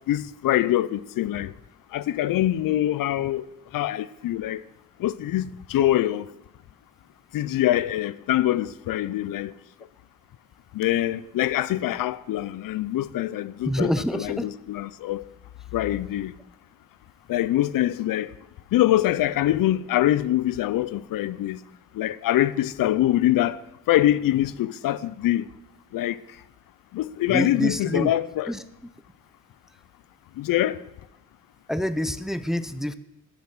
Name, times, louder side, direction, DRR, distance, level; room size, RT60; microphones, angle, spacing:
voice 1, 0.0-1.5 1.9-3.5 3.7-4.6 5.0-6.3 7.3-9.5 10.7-15.3 15.7-16.3 17.3-18.3 18.7-21.6 21.9-23.6 23.9-25.5 25.9-26.2 26.9-28.5 30.4-30.8, left 13 dB, 85° left, 0.5 m, -24 dB
voice 2, 13.7-14.5 27.3-28.1 28.5-28.6 31.7-33.0, equal, ahead, 0.5 m, -26 dB
12.5 x 7.3 x 6.1 m
cardioid pair, 110°, 33 cm